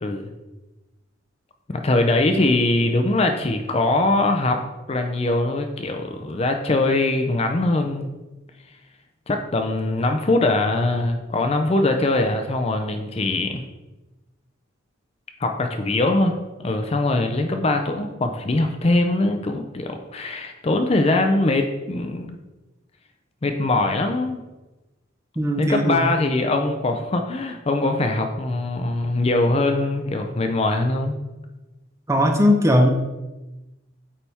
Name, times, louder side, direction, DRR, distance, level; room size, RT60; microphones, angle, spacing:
voice 1, 1.7-4.6 4.9-8.1 9.3-13.6 15.4-22.4 23.4-24.4 25.6-31.2, left 2 dB, 30° left, 5 dB, 0.5 m, -22 dB
voice 2, 25.4-26.0 26.4-26.6 32.1-32.9, equal, 15° right, 4 dB, 0.6 m, -19 dB
8.6 x 3.4 x 4.2 m, 1.1 s
head